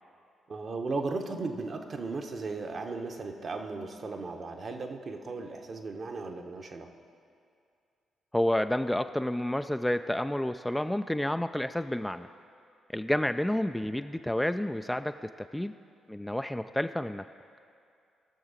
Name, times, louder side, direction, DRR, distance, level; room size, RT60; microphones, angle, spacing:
voice 1, 0.5-6.9, right 3 dB, 45° right, 4 dB, 1.0 m, -36 dB
voice 2, 8.3-12.3 12.9-15.7 16.1-17.3, left 1 dB, 10° left, 9 dB, 0.4 m, -30 dB
19.0 x 6.9 x 4.1 m, 2.4 s
hypercardioid pair, 40°, 0 cm